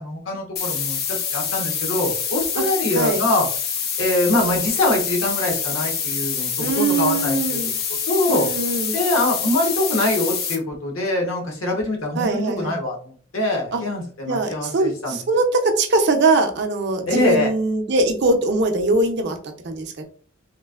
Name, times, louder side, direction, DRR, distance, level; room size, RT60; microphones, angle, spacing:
voice 1, 0.0-3.5 4.0-7.6 8.1-8.5 8.9-15.2 17.1-17.5, left 1 dB, 85° left, 1 dB, 1.0 m, -23 dB
sound 1, 0.6-10.6, left 7 dB, 50° left, 0.5 m, -26 dB
voice 2, 6.6-7.7 8.3-8.9 12.2-12.7 13.7-13.8 14.3-19.4 19.6-20.0, right 2 dB, 55° right, 5 dB, 0.5 m, -21 dB
3.0 x 2.4 x 2.3 m, 0.44 s
head